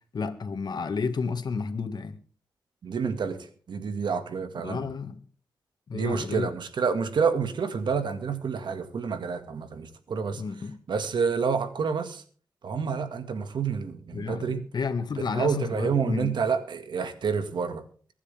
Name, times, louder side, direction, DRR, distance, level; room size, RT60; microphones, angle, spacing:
voice 1, 0.1-2.2 4.6-5.2 5.9-6.5 10.4-10.7 14.1-16.3, left 5 dB, 65° left, 6 dB, 2.0 m, -31 dB
voice 2, 2.8-4.9 5.9-10.4 10.9-12.2 12.6-14.6 15.3-17.9, right 6 dB, 80° right, 9 dB, 2.0 m, -28 dB
23.5 x 9.9 x 3.6 m, 0.42 s
cardioid pair, 75°, 8 cm